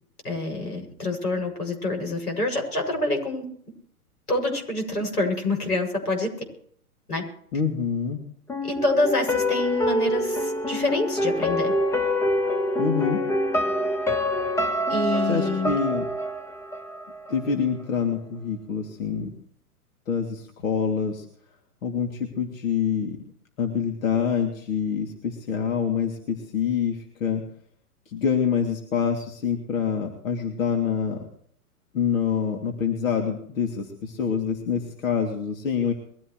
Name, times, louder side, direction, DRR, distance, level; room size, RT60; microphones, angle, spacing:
voice 1, 0.2-3.4 4.3-6.3 7.1-7.2 8.6-11.7 14.9-15.8, left 2 dB, 90° left, 3 dB, 7.4 m, -26 dB
voice 2, 7.5-8.2 12.8-13.2 15.3-16.0 17.3-19.3 20.1-21.2 21.8-23.2 23.6-27.4 28.1-31.2 31.9-35.9, left 6 dB, 60° left, 2 dB, 3.0 m, -26 dB
sound 1, 8.5-17.5 17.8-17.9, left 1 dB, 5° left, 0.7 m, -26 dB
23.0 x 15.5 x 3.3 m, 0.62 s
figure-of-eight pair, 115°, 45 cm